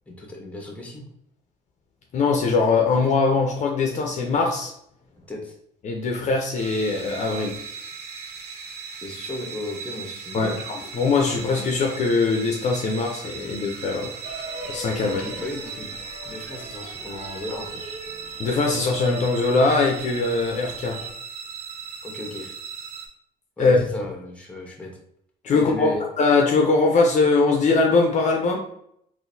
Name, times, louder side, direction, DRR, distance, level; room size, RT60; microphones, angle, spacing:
voice 1, 0.1-1.0 5.3-5.5 9.0-10.6 15.0-15.9 16.2-17.8 22.0-22.6 23.6-24.9 25.5-26.0, left 2 dB, 10° left, 1 dB, 0.9 m, -35 dB
voice 2, 2.1-4.7 5.8-7.6 10.3-14.1 14.7-15.2 18.4-21.0 23.6-23.8 25.4-28.6, left 3 dB, 45° left, 1 dB, 0.6 m, -21 dB
sound 1, 6.6-23.1, right 6 dB, 65° right, 0.6 m, -38 dB
sound 2, 14.2-21.1, equal, 35° right, 0.8 m, -39 dB
3.8 x 2.6 x 2.6 m, 0.71 s
cardioid pair, 110°, 17 cm